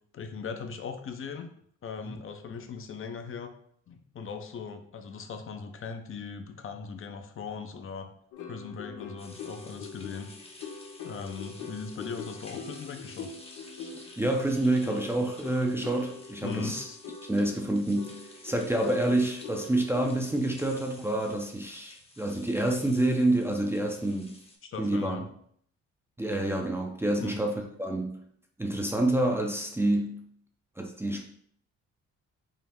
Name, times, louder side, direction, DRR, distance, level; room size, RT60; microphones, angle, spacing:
voice 1, 0.1-1.5 1.8-3.5 3.9-8.1 8.5-10.3 11.0-13.3 16.4-17.0 24.6-25.2 27.2-27.4, left 5 dB, 45° left, 6 dB, 0.6 m, -39 dB
sound 1, 8.3-21.3, left 5 dB, 90° left, 0.7 m, -44 dB
sound 2, 9.2-24.6, left 2 dB, 20° left, 0.9 m, -52 dB
voice 2, 14.2-16.9 17.3-24.3 24.8-25.2 26.2-28.2 28.6-30.2 30.8-31.2, right 1 dB, 10° right, 1 dB, 0.5 m, -28 dB
5.5 x 2.0 x 3.5 m, 0.64 s
cardioid pair, 90°, 30 cm